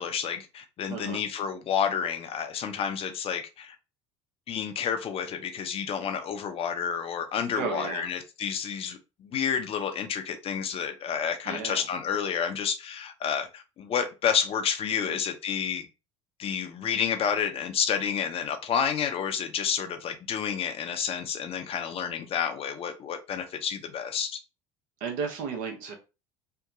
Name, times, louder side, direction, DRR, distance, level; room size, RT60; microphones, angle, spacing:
voice 1, 0.0-3.7 4.5-15.9 16.4-24.4, left 7 dB, 40° left, 0.6 m, -30 dB
voice 2, 0.9-1.2 7.5-8.1 11.4-11.9 14.9-15.2 25.0-25.9, right 5 dB, 55° right, 0.9 m, -34 dB
2.7 x 2.2 x 2.5 m
figure-of-eight pair, 65°, 16 cm